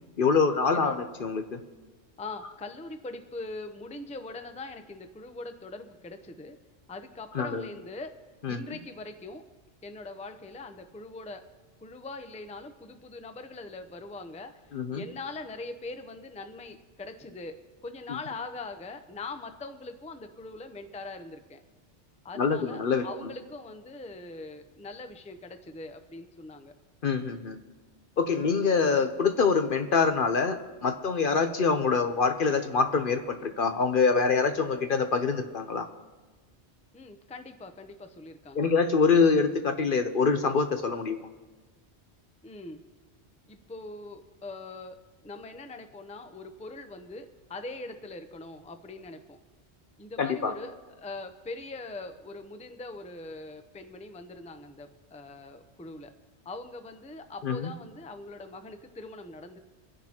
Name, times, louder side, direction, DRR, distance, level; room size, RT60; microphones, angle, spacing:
voice 1, 0.2-1.6 7.3-7.6 8.4-8.8 14.7-15.0 22.4-23.0 27.0-27.6 28.2-35.9 38.5-41.2 50.2-50.5 57.4-57.7, left 5 dB, 55° left, 7 dB, 0.9 m, -25 dB
voice 2, 2.2-6.6 6.9-8.2 8.5-9.4 9.8-11.5 11.8-21.6 22.2-26.7 36.9-38.7 42.4-42.8 43.5-45.0 45.2-49.4 50.0-56.1 56.4-59.6, left 2 dB, 10° left, 7 dB, 0.6 m, -42 dB
26.5 x 10.5 x 2.9 m, 1.4 s
omnidirectional pair, 1.2 m